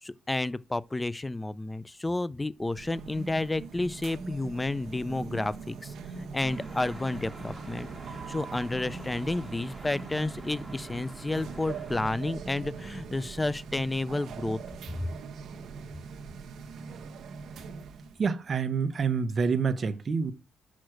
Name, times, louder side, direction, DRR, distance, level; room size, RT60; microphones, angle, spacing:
voice 1, 0.0-14.6, left 2 dB, 15° left, 0.5 m, -31 dB
sound 1, 2.6-18.2, right 5 dB, 65° right, 1.0 m, -42 dB
sound 2, 6.4-12.1, right 1 dB, 5° right, 2.7 m, -46 dB
voice 2, 18.2-20.3, right 5 dB, 40° right, 1.0 m, -27 dB
6.4 x 5.8 x 6.4 m
cardioid pair, 90°, 0 cm